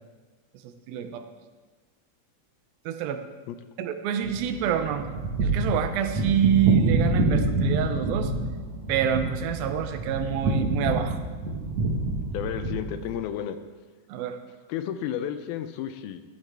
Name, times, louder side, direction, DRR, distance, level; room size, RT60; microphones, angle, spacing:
voice 1, 0.6-1.3 2.9-3.2 3.8-5.1 5.4-8.3 8.9-11.2 14.1-14.4, right 9 dB, 80° right, 9 dB, 2.5 m, -27 dB
sound 1, 4.2-13.1, right 2 dB, 55° right, 2.2 m, -27 dB
voice 2, 12.3-13.6 14.7-16.2, left 10 dB, 90° left, 10 dB, 2.6 m, -32 dB
14.5 x 12.5 x 3.4 m, 1.3 s
omnidirectional pair, 4.2 m